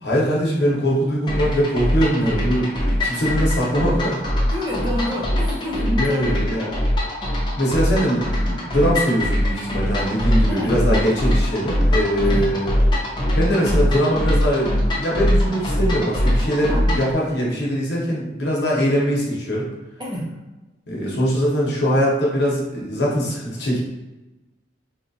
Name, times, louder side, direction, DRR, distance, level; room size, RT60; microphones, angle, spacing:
voice 1, 0.0-4.2 5.8-6.7 7.6-12.7 13.3-19.7 20.9-23.8, equal, 65° left, -4 dB, 1.1 m, -22 dB
sound 1, 1.3-17.1, left 1 dB, 25° left, 0.6 m, -22 dB
voice 2, 4.4-6.4 10.3-10.7 12.2-12.5 16.7-16.9 20.0-20.3, left 1 dB, 25° right, -5 dB, 0.8 m, -28 dB
4.3 x 2.5 x 2.7 m, 1.1 s
head